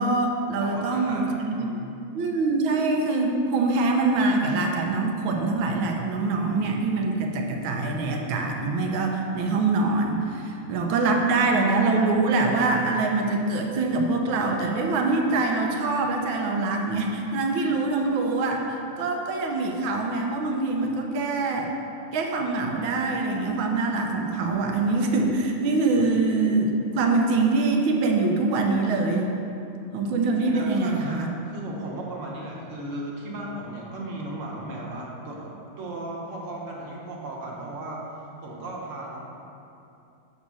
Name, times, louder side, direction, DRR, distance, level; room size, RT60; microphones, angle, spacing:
voice 1, 0.0-1.7 2.1-21.7 22.1-29.3 29.9-31.3, right 3 dB, 85° right, 2 dB, 1.6 m, -24 dB
voice 2, 0.6-1.9 30.2-39.2, right 1 dB, 45° right, -3 dB, 1.2 m, -36 dB
6.3 x 4.2 x 6.2 m, 2.7 s
omnidirectional pair, 2.2 m